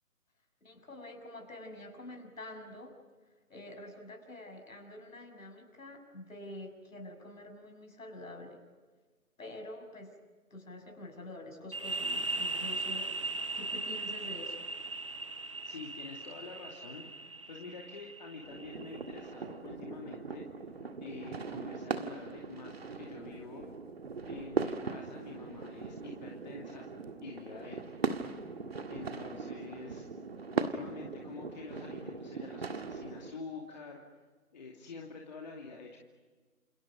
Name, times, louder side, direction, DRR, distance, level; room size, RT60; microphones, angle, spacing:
voice 1, 0.6-3.0 3.5-8.6 9.4-10.1 10.5-14.6, left 1 dB, 60° left, 5 dB, 6.7 m, -47 dB
sound 1, 11.7-19.2, right 2 dB, 20° right, 1.0 m, -38 dB
voice 2, 15.6-17.1 17.5-20.4 21.0-23.7 24.2-26.9 27.2-28.2 28.9-30.1 30.5-34.0 34.5-36.0, left 4 dB, 30° left, -1 dB, 2.7 m, -47 dB
sound 2, 18.4-33.3, right 4 dB, 40° right, 1.9 m, -39 dB
29.0 x 28.5 x 5.3 m, 1.4 s
figure-of-eight pair, 160°, 44 cm